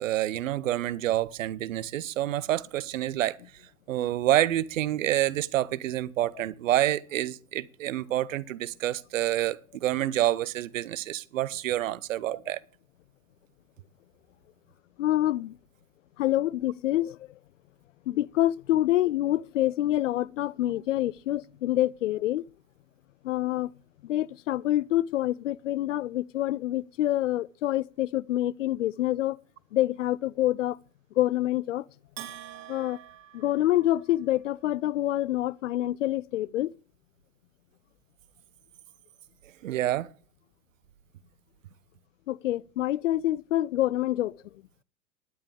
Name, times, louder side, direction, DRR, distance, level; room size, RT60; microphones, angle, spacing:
voice 1, 0.0-3.4 3.9-12.6 39.6-40.1, right 13 dB, 60° right, 0.7 m, -28 dB
voice 2, 15.0-15.5 16.2-17.2 18.1-22.4 23.2-23.7 24.1-29.4 29.7-30.8 31.2-31.8 32.7-33.0 33.3-36.7 42.3-44.3, left 14 dB, 55° left, 0.5 m, -26 dB
Bell, 32.2-34.3, right 11 dB, 35° right, 2.1 m, -45 dB
19.0 x 10.5 x 3.4 m
figure-of-eight pair, 95°, 45 cm